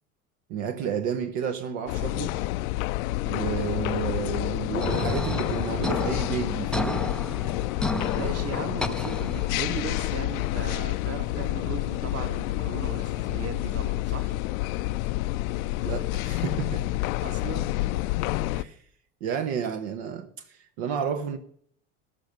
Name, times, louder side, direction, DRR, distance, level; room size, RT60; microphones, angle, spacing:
voice 1, 0.5-2.4 3.2-7.1 15.8-16.9 18.5-18.8 19.2-21.4, right 7 dB, 65° right, 1.2 m, -31 dB
sound 1, 1.9-18.6, left 17 dB, 70° left, 0.6 m, -29 dB
sound 2, 4.8-9.8, left 1 dB, ahead, 0.4 m, -32 dB
voice 2, 8.1-14.4 17.2-17.8, right 6 dB, 35° right, 1.5 m, -37 dB
14.0 x 5.4 x 6.7 m
hypercardioid pair, 80°, 43 cm